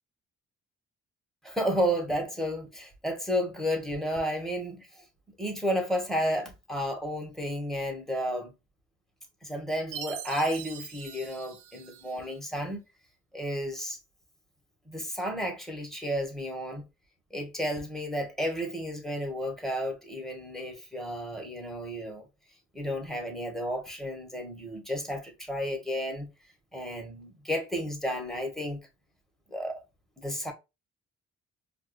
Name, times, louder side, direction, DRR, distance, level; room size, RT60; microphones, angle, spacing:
voice 1, 1.4-5.0 5.4-8.5 9.4-12.8 13.3-14.0 14.9-16.8 17.3-22.3 22.7-26.3 26.7-28.8 29.5-29.8 30.2-30.5, equal, ahead, 1.2 m, -32 dB
Chime, 9.9-12.4, right 9 dB, 90° right, 0.5 m, -43 dB
4.7 x 2.5 x 2.2 m
cardioid pair, 90°, 30 cm